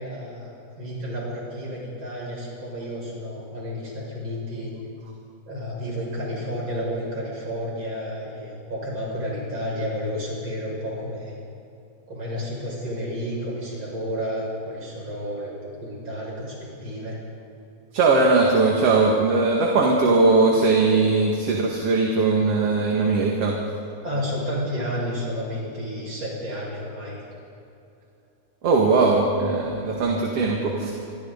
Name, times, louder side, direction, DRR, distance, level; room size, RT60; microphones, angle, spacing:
voice 1, 0.0-4.7 5.5-11.3 12.1-15.5 15.8-17.2 24.0-27.2, equal, 35° right, -4 dB, 7.2 m, -31 dB
voice 2, 17.9-23.6 28.6-30.9, right 3 dB, 50° right, -1 dB, 2.9 m, -20 dB
28.0 x 23.0 x 4.1 m, 2.8 s
omnidirectional pair, 3.6 m